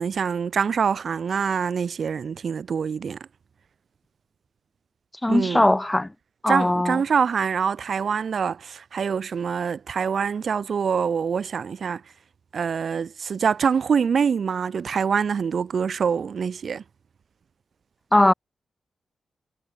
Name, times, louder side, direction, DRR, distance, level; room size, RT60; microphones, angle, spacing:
voice 1, 0.0-3.2 5.3-5.7 6.5-12.0 12.5-16.8, right 6 dB, 65° right, 1.5 m, -25 dB
voice 2, 5.2-6.1 6.4-7.0 18.1-18.3, left 1 dB, 15° left, 0.3 m, -19 dB
cardioid pair, 65°, 0 cm